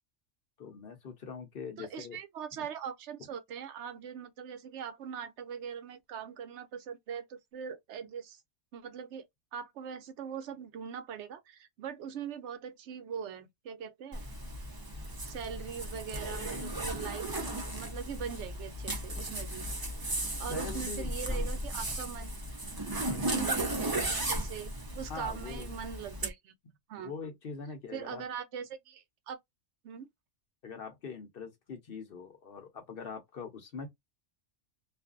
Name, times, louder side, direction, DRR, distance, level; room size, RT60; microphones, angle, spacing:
voice 1, 0.6-2.2 3.2-3.3 20.5-21.5 23.1-23.5 25.1-25.7 27.0-28.2 30.6-33.9, left 5 dB, 55° left, 0.9 m, -43 dB
voice 2, 1.8-8.4 8.7-9.3 9.5-14.3 15.2-17.3 17.7-19.7 20.4-22.3 23.2-26.5 26.9-27.1 27.9-29.4 29.8-30.1, right 7 dB, 75° right, 0.9 m, -41 dB
Zipper (clothing), 14.1-26.3, right 1 dB, 25° right, 0.5 m, -35 dB
2.5 x 2.3 x 2.4 m
omnidirectional pair, 1.2 m